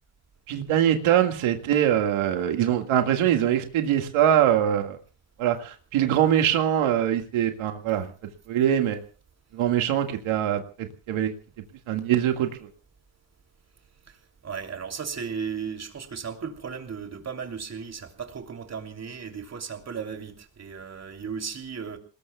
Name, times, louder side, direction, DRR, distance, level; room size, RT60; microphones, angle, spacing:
voice 1, 0.5-5.0 5.4-8.1 8.5-9.0 9.5-11.3 11.9-12.6, right 10 dB, 85° right, 2.1 m, -23 dB
voice 2, 14.4-22.0, right 6 dB, 35° right, 3.1 m, -35 dB
28.5 x 20.0 x 2.4 m
cardioid pair, 130°, 48 cm